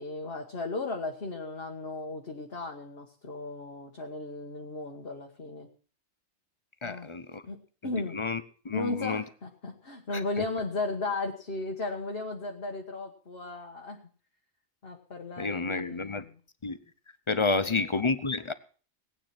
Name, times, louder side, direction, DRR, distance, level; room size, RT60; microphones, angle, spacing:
voice 1, 0.0-5.7 6.8-7.1 7.4-8.2 8.7-14.0 14.8-16.4 17.6-17.9, left 3 dB, 60° left, 1 dB, 1.7 m, -36 dB
voice 2, 6.8-7.4 8.1-9.2 15.4-16.2 16.6-16.8 17.3-18.5, left 4 dB, 30° left, 14 dB, 0.7 m, -30 dB
18.0 x 9.1 x 5.9 m, 0.41 s
omnidirectional pair, 1.2 m